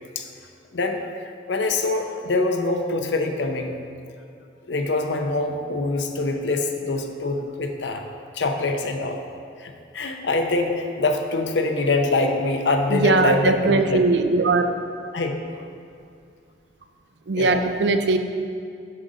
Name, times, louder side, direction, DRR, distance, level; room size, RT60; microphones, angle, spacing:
voice 1, 0.7-3.8 4.7-8.1 8.3-9.2 9.6-14.1 15.1-15.4 17.3-17.6, left 2 dB, 85° left, 4 dB, 0.7 m, -24 dB
voice 2, 12.9-14.6 17.3-18.2, right 3 dB, 80° right, 7 dB, 0.5 m, -20 dB
7.6 x 3.9 x 6.3 m, 2.4 s
head